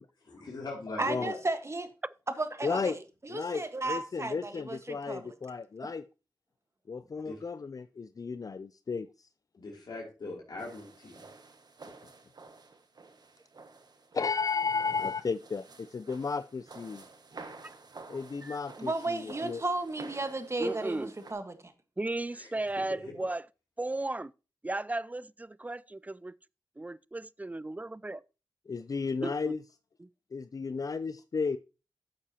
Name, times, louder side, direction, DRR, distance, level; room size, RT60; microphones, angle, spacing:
voice 1, 0.5-1.4 7.2-7.4 9.6-11.2 22.3-22.5, left 2 dB, 75° left, 2.9 m, -41 dB
voice 2, 1.0-1.9 2.4-5.3 18.8-21.7, right 2 dB, 40° right, 1.4 m, -34 dB
voice 3, 2.6-3.0 3.3-6.0 6.9-9.1 14.1-17.0 18.1-19.6 28.7-29.6 30.3-31.6, left 5 dB, 55° left, 0.4 m, -33 dB
sound 1, 10.6-21.3, right 3 dB, 70° right, 1.1 m, -51 dB
voice 4, 20.6-21.1 22.0-23.4 23.8-24.3 24.6-26.3 26.8-28.2 29.2-29.3 30.0-30.1, right 2 dB, 20° right, 0.4 m, -35 dB
11.5 x 7.4 x 2.9 m
cardioid pair, 40°, 7 cm